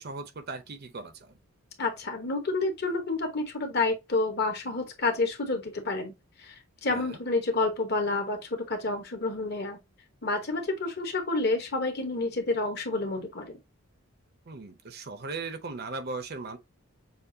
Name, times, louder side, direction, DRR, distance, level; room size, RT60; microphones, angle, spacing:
voice 1, 0.0-1.3 6.9-7.2 14.5-16.6, right 3 dB, 45° right, 0.6 m, -38 dB
voice 2, 1.8-6.1 6.4-9.8 10.2-13.6, left 3 dB, 45° left, 1.0 m, -29 dB
6.8 x 2.3 x 2.7 m
head